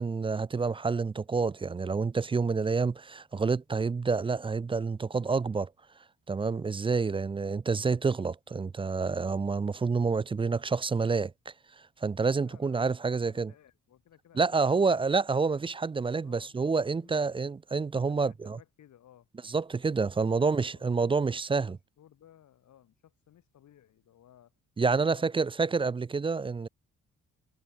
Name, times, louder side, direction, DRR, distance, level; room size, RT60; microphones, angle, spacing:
voice 1, 0.0-5.7 6.3-11.5 12.0-13.5 14.4-18.6 19.5-21.8 24.8-26.7, right 4 dB, 20° right, 0.4 m, -28 dB
voice 2, 12.4-14.9 16.2-17.3 18.1-19.3 20.0-21.2 21.5-24.5 25.0-25.4, left 11 dB, 70° left, 6.3 m, -59 dB
cardioid pair, 90°, 30 cm